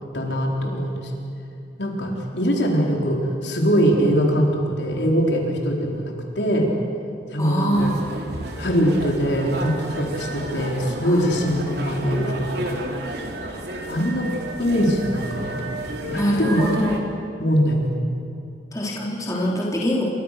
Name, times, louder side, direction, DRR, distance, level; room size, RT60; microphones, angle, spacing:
voice 1, 0.1-1.1 1.8-6.7 7.3-7.8 8.6-12.8 13.9-14.3 14.6-15.6 16.1-16.6 17.4-18.0, equal, 70° left, 0 dB, 4.4 m, -22 dB
voice 2, 7.4-7.9 11.0-11.3 16.1-17.0 18.7-20.0, equal, 20° left, -4 dB, 3.9 m, -24 dB
sound 1, 7.7-17.0, right 1 dB, 60° right, 3.5 m, -32 dB
29.5 x 25.0 x 6.8 m, 2.7 s
head